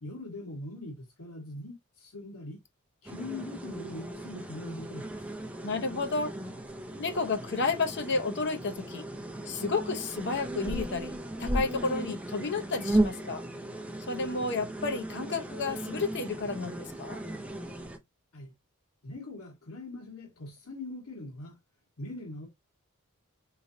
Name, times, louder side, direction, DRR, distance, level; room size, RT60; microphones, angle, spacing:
voice 1, 0.0-2.6 3.0-5.3 18.3-18.5 19.0-21.6 22.0-22.5, left 2 dB, 85° left, 1.5 m, -42 dB
sound 1, 3.0-18.0, right 1 dB, 5° right, 0.6 m, -36 dB
voice 2, 5.6-6.3 7.0-9.1 9.5-13.4 14.1-17.2, left 3 dB, 55° left, 0.7 m, -31 dB
3.7 x 3.1 x 2.6 m
head